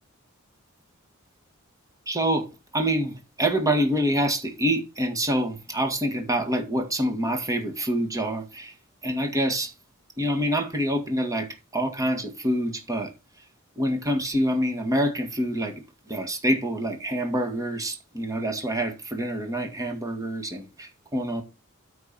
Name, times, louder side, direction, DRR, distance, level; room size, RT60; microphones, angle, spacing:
voice 1, 2.1-2.5 2.7-8.7 9.0-9.7 10.2-13.1 13.8-21.4, equal, 15° right, 2.0 m, -26 dB
9.4 x 4.7 x 6.0 m
head